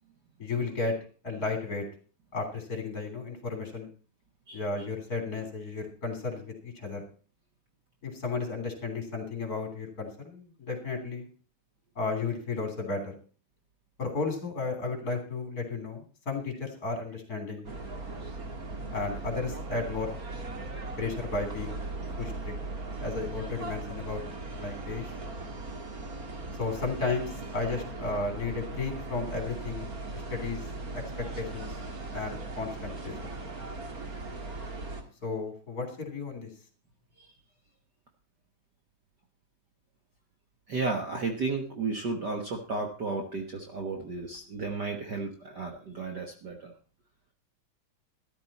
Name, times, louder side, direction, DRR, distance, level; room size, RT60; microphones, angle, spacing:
voice 1, 0.4-0.9 1.2-1.8 2.3-3.9 4.5-7.0 8.0-11.3 11.9-13.1 14.0-17.7 18.9-20.1 21.0-21.8 22.2-22.5 23.0-24.2 24.5-25.1 26.6-29.8 30.1-30.6 30.9-31.7 32.1-33.2 35.2-36.5, left 3 dB, 25° left, 4 dB, 3.3 m, -33 dB
sound 1, 17.6-35.0, right 2 dB, 35° right, 1.5 m, -38 dB
voice 2, 40.7-46.7, right 3 dB, 85° right, 3 dB, 0.9 m, -33 dB
13.5 x 12.0 x 4.2 m, 0.37 s
omnidirectional pair, 4.1 m